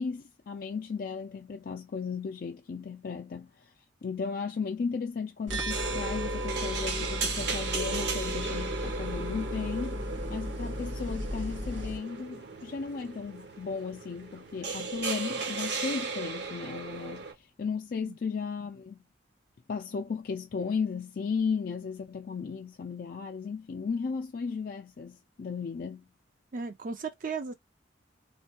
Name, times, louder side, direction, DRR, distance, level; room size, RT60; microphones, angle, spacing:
voice 1, 0.0-3.7 4.0-10.0 10.3-19.0 19.7-26.1, left 5 dB, 50° left, 0.3 m, -35 dB
sound 1, 5.5-12.0, equal, 80° right, 1.5 m, -35 dB
sound 2, 5.7-17.3, right 4 dB, 60° right, 0.8 m, -36 dB
voice 2, 26.5-27.5, right 5 dB, 45° right, 0.4 m, -35 dB
3.2 x 2.3 x 2.7 m
head